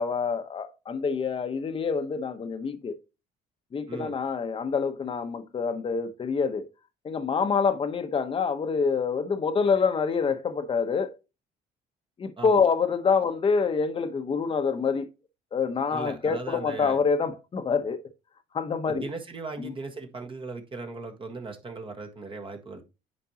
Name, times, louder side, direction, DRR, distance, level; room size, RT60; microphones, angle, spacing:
voice 1, 0.0-3.0 3.7-6.6 7.0-11.1 12.2-15.1 15.5-18.0 18.5-19.1 19.6-19.7, left 5 dB, 30° left, 1.0 m, -26 dB
voice 2, 15.9-17.0 18.9-22.8, right 3 dB, 30° right, 1.6 m, -38 dB
9.5 x 5.2 x 2.9 m
cardioid pair, 110°, 17 cm